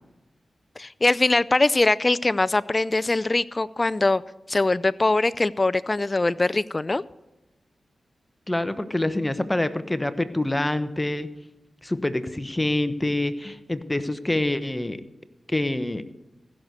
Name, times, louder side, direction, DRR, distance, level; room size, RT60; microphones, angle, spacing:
voice 1, 0.8-4.2 4.5-7.0, left 2 dB, 35° left, 18 dB, 0.4 m, -22 dB
voice 2, 8.5-11.3 11.8-15.0 15.5-16.0, left 1 dB, 20° left, 12 dB, 1.1 m, -26 dB
15.5 x 6.6 x 8.3 m, 0.99 s
cardioid pair, 40°, 0 cm